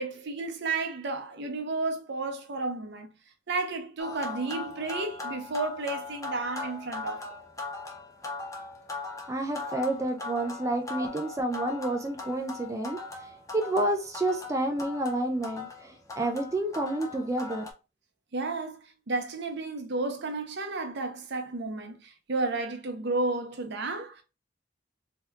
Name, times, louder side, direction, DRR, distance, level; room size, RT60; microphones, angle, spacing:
voice 1, 0.0-3.1 3.5-7.3 18.3-24.2, right 3 dB, 65° right, 0.6 m, -32 dB
sound 1, 4.0-17.7, left 3 dB, 20° left, 0.6 m, -40 dB
voice 2, 9.3-17.6, right 1 dB, 15° right, 0.3 m, -30 dB
2.8 x 2.2 x 3.4 m
head